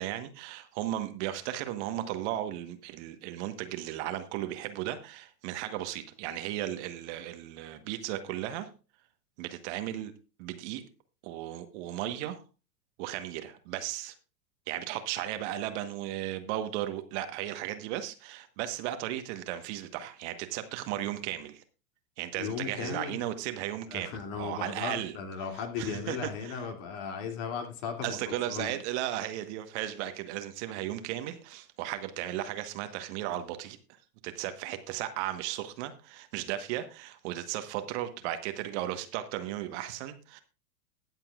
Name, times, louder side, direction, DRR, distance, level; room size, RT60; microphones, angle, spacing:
voice 1, 0.0-8.7 9.4-10.1 10.4-10.8 11.2-12.4 13.0-14.1 14.7-21.6 22.2-25.2 25.8-26.6 28.0-33.8 34.2-40.4, right 13 dB, 45° right, 1.3 m, -35 dB
voice 2, 22.4-23.2 23.9-28.7, left 6 dB, 50° left, 2.7 m, -36 dB
21.0 x 7.5 x 2.4 m
hypercardioid pair, 100°, 46 cm